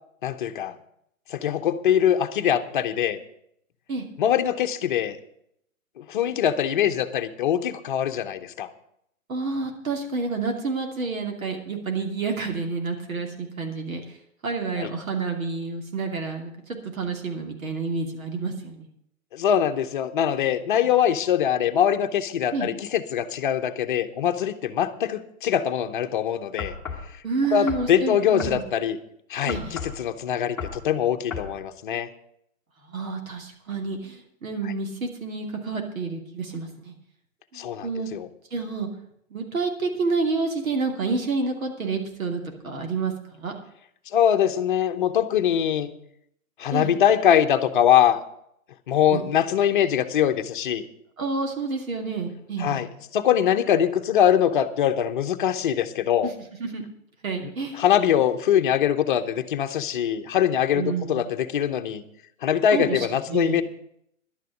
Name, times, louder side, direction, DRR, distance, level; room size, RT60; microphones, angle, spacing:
voice 1, 0.2-0.7 1.3-3.2 4.2-5.2 6.0-8.7 14.8-14.9 19.3-26.7 27.5-29.0 29.3-32.1 37.5-38.3 44.1-45.9 46.6-48.2 48.9-50.8 52.6-56.3 57.4-57.5 57.8-62.0 62.4-63.6, left 9 dB, 35° left, 7 dB, 0.9 m, -23 dB
voice 2, 9.3-14.0 14.4-16.5 16.8-18.8 22.5-22.7 27.2-28.6 29.5-29.8 32.9-36.9 37.5-38.1 38.5-38.9 39.3-43.1 43.4-43.5 46.7-46.9 49.1-49.2 51.2-52.8 56.2-56.3 56.6-56.8 57.2-57.8 60.7-61.3 62.7-63.6, right 4 dB, 70° right, 3 dB, 2.9 m, -29 dB
sound 1, 26.6-27.1 27.7-27.9 28.4-28.6 29.5-30.0 30.6-30.8 31.3-31.5, left 5 dB, 5° left, 1.4 m, -33 dB
11.5 x 6.7 x 9.2 m, 0.73 s
hypercardioid pair, 155°, 42 cm